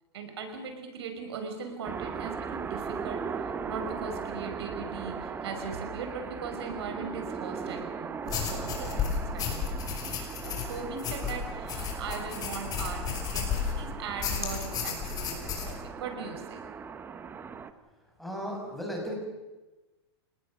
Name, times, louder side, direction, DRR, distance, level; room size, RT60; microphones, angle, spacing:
voice 1, 0.1-15.7 16.0-16.6, right 5 dB, 70° right, 5 dB, 5.4 m, -39 dB
sound 1, 1.8-17.7, right 6 dB, 15° right, 1.1 m, -38 dB
sound 2, 8.3-13.8 14.2-15.7, left 7 dB, 25° left, 5.7 m, -33 dB
voice 2, 18.2-19.2, equal, ahead, -1 dB, 6.8 m, -35 dB
29.5 x 19.0 x 6.6 m, 1.1 s
hypercardioid pair, 145°, 14 cm